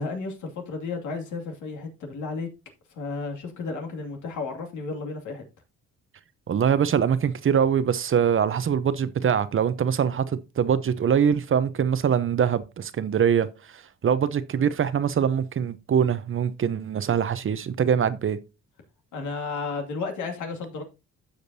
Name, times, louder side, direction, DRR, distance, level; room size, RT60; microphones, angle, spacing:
voice 1, 0.0-2.5 2.9-5.4 19.1-20.8, left 4 dB, 75° left, 2.4 m, -33 dB
voice 2, 6.5-18.4, right 8 dB, 45° right, 0.8 m, -23 dB
15.0 x 5.2 x 2.7 m
cardioid pair, 90°, 30 cm